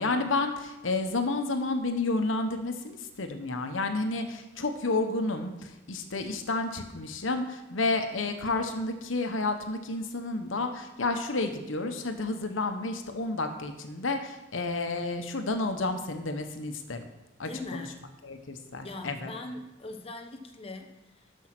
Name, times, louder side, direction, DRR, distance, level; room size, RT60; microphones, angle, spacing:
voice 1, 0.0-17.0 17.4-17.9 18.2-19.3, left 3 dB, 90° left, 7 dB, 1.1 m, -31 dB
voice 2, 17.4-18.0 18.8-21.5, left 2 dB, 30° left, 4 dB, 0.9 m, -41 dB
12.5 x 5.6 x 6.0 m, 1.0 s
head